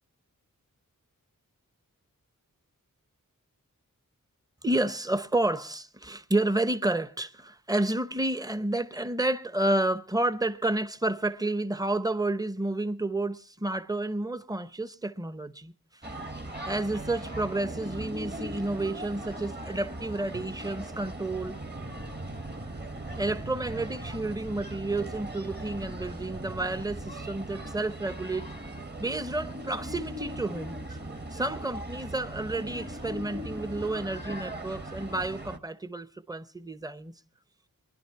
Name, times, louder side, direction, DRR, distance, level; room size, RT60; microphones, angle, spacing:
voice 1, 4.6-16.0 16.6-21.6 23.2-28.5 29.0-30.9 31.3-37.1, right 2 dB, 10° right, 0.7 m, -30 dB
sound 1, 16.0-35.6, right 1 dB, 30° right, 1.2 m, -39 dB
sound 2, 16.5-19.6 20.3-27.1, right 1 dB, 50° right, 1.4 m, -46 dB
23.0 x 11.0 x 4.6 m
wide cardioid pair, 70°, 34 cm